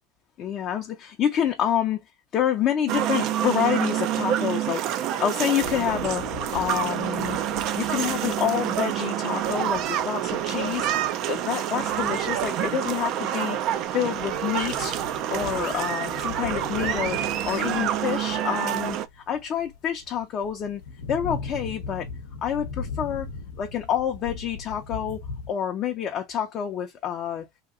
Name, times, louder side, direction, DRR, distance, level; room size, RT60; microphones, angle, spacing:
voice 1, 0.4-2.0 2.3-6.3 6.5-7.4 7.7-10.9 11.3-15.0 15.3-20.8 21.1-22.1 22.4-23.3 23.6-27.5, left 9 dB, 40° left, 0.5 m, -28 dB
sound 1, 2.9-19.1, right 11 dB, 55° right, 0.4 m, -27 dB
sound 2, 5.6-13.2 13.5-25.5, left 4 dB, 90° left, 0.7 m, -39 dB
2.9 x 2.8 x 2.5 m
supercardioid pair, 120°, 0 cm